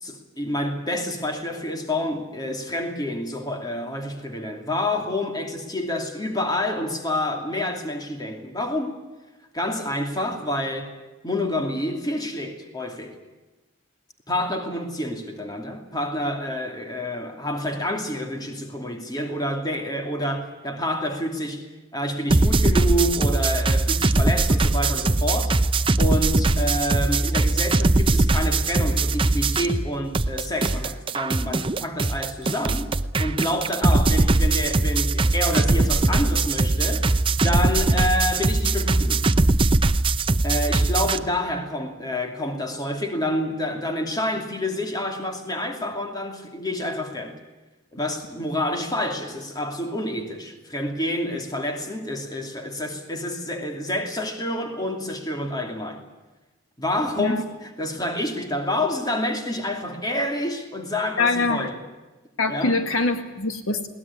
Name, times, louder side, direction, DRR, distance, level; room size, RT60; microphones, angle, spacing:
voice 1, 0.0-9.0 9.5-10.9 11.2-13.2 14.3-25.6 26.0-32.9 33.2-37.1 37.4-39.3 40.4-47.4 47.9-56.0 56.8-61.8 62.5-62.8, left 1 dB, 20° left, 2.6 m, -28 dB
sound 1, 22.3-29.9 30.1-41.2, right 2 dB, 25° right, 0.7 m, -21 dB
voice 2, 61.2-61.7 62.4-63.9, left 3 dB, 75° left, 2.0 m, -23 dB
21.0 x 19.0 x 9.8 m
head